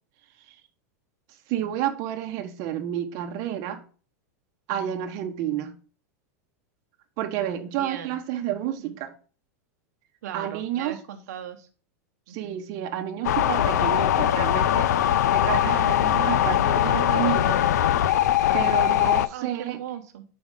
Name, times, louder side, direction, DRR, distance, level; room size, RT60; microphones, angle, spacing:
voice 1, 1.5-3.8 4.7-5.8 7.2-9.1 10.3-11.0 12.3-17.6 18.5-19.8, right 11 dB, 45° right, 0.8 m, -30 dB
voice 2, 7.7-8.2 10.2-11.7 12.3-12.4 19.3-20.2, right 10 dB, 75° right, 0.7 m, -38 dB
sound 1, 13.2-19.3, left 11 dB, 85° left, 0.4 m, -21 dB
6.2 x 4.3 x 3.5 m
supercardioid pair, 140°, 9 cm